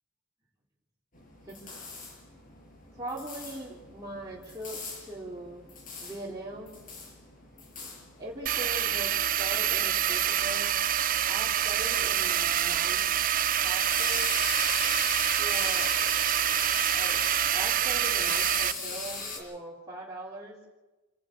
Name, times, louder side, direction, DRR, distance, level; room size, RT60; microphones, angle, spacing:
sound 1, 1.1-19.4, left 3 dB, 45° left, 6.3 m, -40 dB
voice 1, 1.5-1.8 2.9-5.7 6.0-6.7 8.2-10.8 11.3-13.1 13.6-14.3 15.4-16.0 16.9-17.2 17.5-20.7, right 1 dB, 20° right, -6 dB, 3.8 m, -40 dB
sound 2, 8.5-18.7, right 10 dB, 45° right, 0.6 m, -26 dB
28.0 x 12.0 x 7.8 m, 1.2 s
head